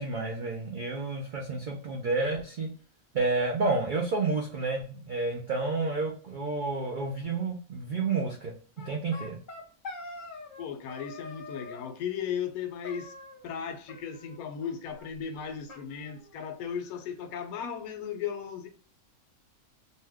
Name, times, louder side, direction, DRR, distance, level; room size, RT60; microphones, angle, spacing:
voice 1, 0.0-2.7 3.1-8.5 8.8-9.4, right 3 dB, 80° right, 0.4 m, -30 dB
sound 1, 8.8-10.6 10.9-11.9 12.8-13.6 13.9-14.7 15.0-15.1 15.3-15.4 15.7-16.7, left 2 dB, 45° left, 0.7 m, -45 dB
voice 2, 10.6-13.1 13.4-18.7, left 7 dB, 80° left, 1.0 m, -36 dB
2.7 x 2.1 x 3.4 m
omnidirectional pair, 1.5 m